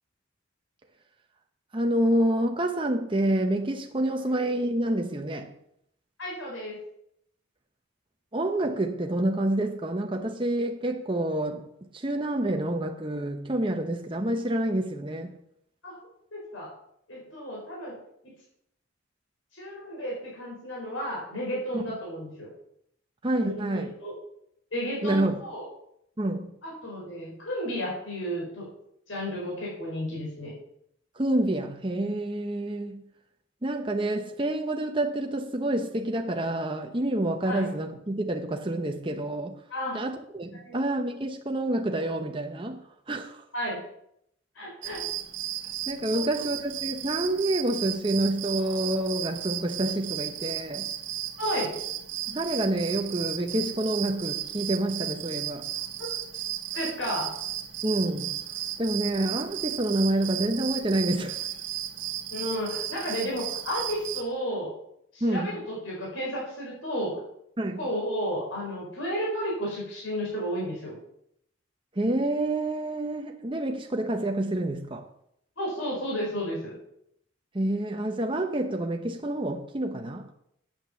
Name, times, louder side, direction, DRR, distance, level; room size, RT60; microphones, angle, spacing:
voice 1, 1.7-5.5 8.3-11.7 11.9-15.4 21.7-21.8 23.2-23.9 25.0-25.4 26.2-26.5 31.1-33.1 33.6-39.6 39.9-42.8 43.1-43.4 44.8-45.0 45.9-50.9 52.3-55.7 57.8-58.4 58.8-61.4 65.2-65.5 67.6-67.8 72.0-75.1 77.5-80.3, right 1 dB, 25° right, 0.8 m, -28 dB
voice 2, 6.2-6.8 15.8-15.9 16.3-16.7 17.1-18.0 19.5-22.5 23.4-23.5 24.0-24.2 24.7-25.6 26.6-28.7 29.1-30.5 37.4-37.6 39.7-40.0 40.6-40.8 43.5-43.8 44.5-45.0 46.1-46.2 51.4-51.8 56.0-56.1 56.7-57.3 62.3-64.7 65.1-67.2 67.8-71.0 75.6-76.7, equal, 90° left, 4.7 m, -32 dB
sound 1, 44.8-64.2, right 12 dB, 75° right, 1.3 m, -34 dB
8.9 x 8.6 x 7.1 m
head